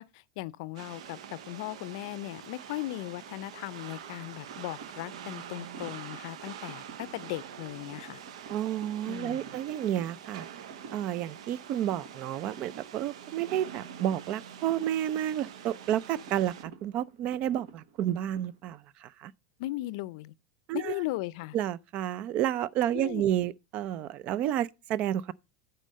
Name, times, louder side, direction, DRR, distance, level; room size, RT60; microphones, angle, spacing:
voice 1, 0.0-8.2 9.1-9.4 19.6-20.3 20.7-21.6 22.9-23.2, left 18 dB, 65° left, 0.5 m, -37 dB
sound 1, 0.8-16.7, right 8 dB, 85° right, 0.8 m, -45 dB
sound 2, 4.5-18.6, right 6 dB, 65° right, 1.4 m, -52 dB
voice 2, 8.5-10.4 10.9-19.3 20.7-20.9 21.5-25.3, right 11 dB, 45° right, 0.4 m, -31 dB
8.9 x 4.3 x 6.4 m
supercardioid pair, 130°, 3 cm